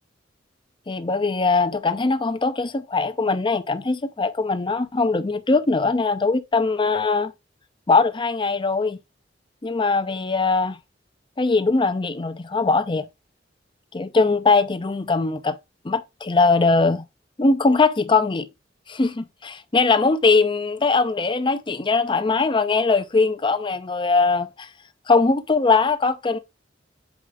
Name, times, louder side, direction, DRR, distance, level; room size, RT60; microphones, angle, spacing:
voice 1, 0.9-7.3 7.9-9.0 9.6-10.8 11.4-13.1 13.9-15.6 15.8-17.1 17.4-18.5 18.9-24.7 25.1-26.4, left 3 dB, 25° left, 0.6 m, -21 dB
6.7 x 4.9 x 3.6 m
head